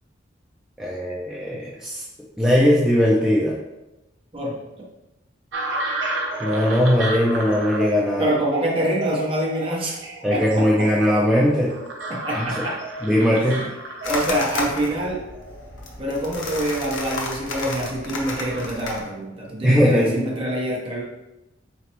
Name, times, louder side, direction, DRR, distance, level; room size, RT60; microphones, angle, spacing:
voice 1, 0.8-2.0 2.4-3.6 6.4-8.3 10.2-11.8 12.3-12.6 13.0-13.6 19.6-20.3, equal, 5° right, -6 dB, 0.4 m, -19 dB
sound 1, 5.5-18.7, right 2 dB, 75° right, 0.6 m, -33 dB
voice 2, 8.2-10.0 10.3-10.6 12.1-12.8 13.4-13.7 14.0-15.2 16.0-21.0, right 1 dB, 30° right, -4 dB, 0.9 m, -26 dB
sound 2, 14.0-19.0, left 2 dB, 80° left, 0.7 m, -32 dB
3.9 x 3.2 x 2.9 m, 0.96 s
head